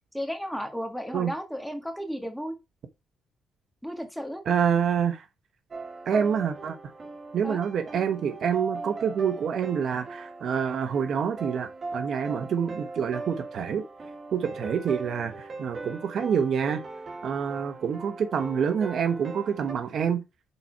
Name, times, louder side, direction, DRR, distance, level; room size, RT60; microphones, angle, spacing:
voice 1, 0.1-2.5 3.8-4.4 7.4-7.6, equal, ahead, 1.8 m, -34 dB
voice 2, 4.5-5.2 6.1-6.8 7.3-13.8 14.3-16.8 17.2-20.2, right 7 dB, 60° right, 0.9 m, -27 dB
sound 1, 5.7-19.7, right 3 dB, 40° right, 1.8 m, -39 dB
6.9 x 4.2 x 4.6 m
cardioid pair, 90°, 0 cm